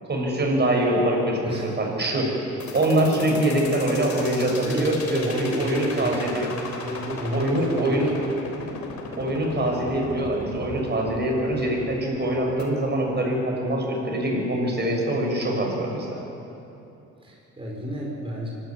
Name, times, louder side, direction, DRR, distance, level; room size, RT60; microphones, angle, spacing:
voice 1, 0.1-6.5 7.3-8.1 9.2-16.2, right 1 dB, 35° right, 0 dB, 6.3 m, -24 dB
voice 2, 1.4-1.8 4.6-6.5 6.8-8.1 17.2-18.5, right 1 dB, 20° right, -4 dB, 4.9 m, -32 dB
sound 1, 2.6-12.6, left 4 dB, 65° left, 3.7 m, -37 dB
25.0 x 12.5 x 9.6 m, 3.0 s
cardioid pair, 90°, 30 cm